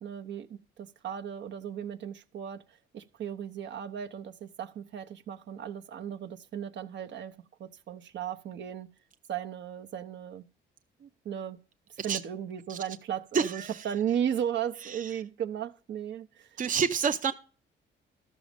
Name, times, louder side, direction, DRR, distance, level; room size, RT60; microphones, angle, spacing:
voice 1, 0.0-8.9 9.3-10.5 11.0-11.6 11.9-16.6, right 9 dB, 65° right, 1.0 m, -36 dB
voice 2, 13.3-13.9 14.8-15.2 16.6-17.3, right 6 dB, 40° right, 0.7 m, -29 dB
13.0 x 6.4 x 5.2 m
cardioid pair, 90°, 20 cm